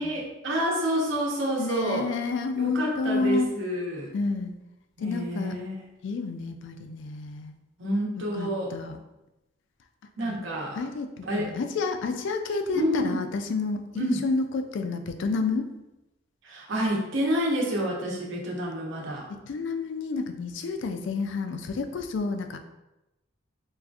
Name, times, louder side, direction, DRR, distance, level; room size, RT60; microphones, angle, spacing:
voice 1, 0.0-2.1 2.6-4.1 5.0-5.7 7.8-8.7 10.2-10.8 11.2-11.5 12.7-13.2 13.9-14.2 16.4-19.3, equal, 65° right, -3 dB, 0.9 m, -28 dB
voice 2, 1.6-3.5 4.1-4.5 5.0-5.6 6.0-7.5 8.3-9.0 10.2-10.4 10.8-15.7 19.3-22.6, left 4 dB, 60° left, 7 dB, 0.3 m, -30 dB
4.7 x 2.5 x 2.4 m, 0.96 s
head